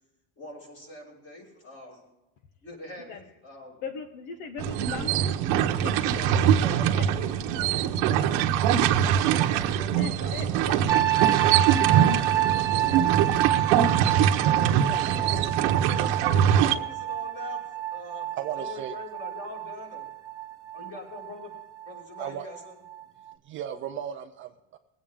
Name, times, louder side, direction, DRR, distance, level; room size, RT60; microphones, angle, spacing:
voice 1, 0.4-2.0 2.6-3.8 6.1-9.5 9.8-11.2 11.4-13.6 14.0-15.4 15.8-18.3 18.6-20.1 20.7-21.5 21.9-22.8, left 1 dB, 30° left, -4 dB, 5.3 m, -43 dB
voice 2, 3.8-6.2 10.0-10.8, left 5 dB, 60° left, 7 dB, 1.2 m, -39 dB
sound 1, 4.6-16.7, right 9 dB, 55° right, 1.1 m, -23 dB
sound 2, 10.9-22.6 22.9-23.3, right 13 dB, 10° right, 0.9 m, -28 dB
voice 3, 18.4-18.9 22.2-22.5 23.4-24.8, right 10 dB, 30° right, 5 dB, 0.5 m, -35 dB
21.5 x 8.6 x 3.6 m, 0.95 s
cardioid pair, 165°, 44 cm